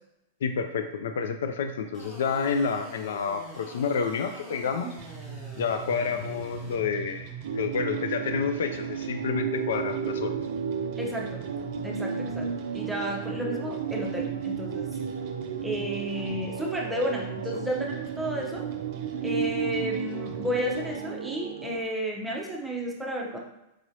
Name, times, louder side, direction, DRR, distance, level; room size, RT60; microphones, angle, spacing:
voice 1, 0.4-4.9 5.5-7.3 7.5-10.3, left 5 dB, 75° left, 7 dB, 0.4 m, -29 dB
sound 1, 1.9-6.8, left 1 dB, 15° left, 1.4 m, -45 dB
sound 2, 5.0-21.0, right 9 dB, 50° right, 0.7 m, -42 dB
sound 3, 7.4-21.8, right 7 dB, 80° right, 0.3 m, -33 dB
voice 2, 11.0-11.5 11.8-15.0 15.6-18.7 19.2-23.4, equal, 5° right, -2 dB, 0.8 m, -32 dB
4.8 x 3.0 x 2.7 m, 0.90 s
hypercardioid pair, 120°, 0 cm